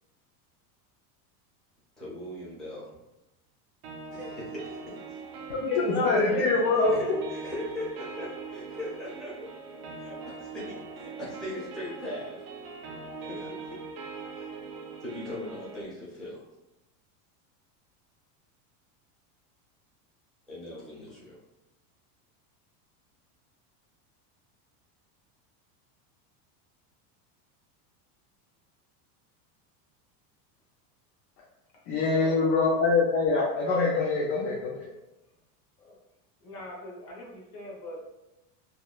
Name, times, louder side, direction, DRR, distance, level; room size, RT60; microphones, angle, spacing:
voice 1, 2.0-2.9 4.1-5.2 6.8-9.5 10.0-12.4 13.2-13.8 14.3-14.5 15.0-16.4 20.5-21.4, left 1 dB, ahead, -8 dB, 0.6 m, -39 dB
sound 1, 3.8-15.8, right 4 dB, 65° right, 0.6 m, -41 dB
voice 2, 5.5-7.1 31.9-34.8, left 3 dB, 50° left, -3 dB, 0.5 m, -24 dB
voice 3, 32.1-32.5 35.8-36.0 36.4-38.0, left 1 dB, 70° left, -2 dB, 1.1 m, -42 dB
2.8 x 2.1 x 2.3 m, 0.95 s
supercardioid pair, 140°, 47 cm